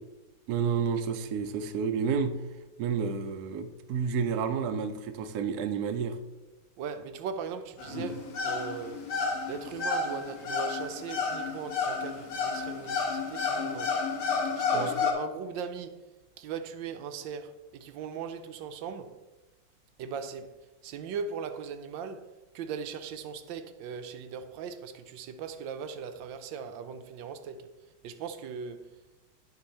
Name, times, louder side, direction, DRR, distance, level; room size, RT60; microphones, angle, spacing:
voice 1, 0.5-2.4 2.8-6.2 7.9-8.1 14.7-14.9, right 6 dB, 90° right, 0.8 m, -30 dB
voice 2, 6.8-9.1 9.5-14.0 14.5-16.0 16.4-19.2 20.0-20.5 20.8-27.7 28.0-28.9, right 6 dB, 75° right, 1.2 m, -39 dB
sound 1, 7.8-15.1, left 4 dB, 60° left, 1.5 m, -31 dB
10.5 x 3.7 x 4.2 m
omnidirectional pair, 2.3 m